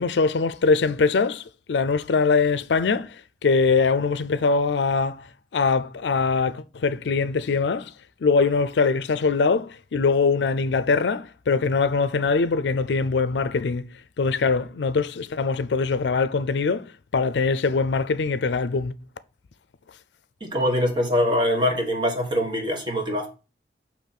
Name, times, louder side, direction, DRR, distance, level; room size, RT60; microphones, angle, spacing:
voice 1, 0.0-5.3 5.5-7.9 8.2-13.9 14.2-16.8 17.1-18.9, left 4 dB, 85° left, 0.5 m, -22 dB
voice 2, 20.4-23.3, left 1 dB, 25° right, 1.4 m, -23 dB
6.5 x 3.0 x 5.8 m
head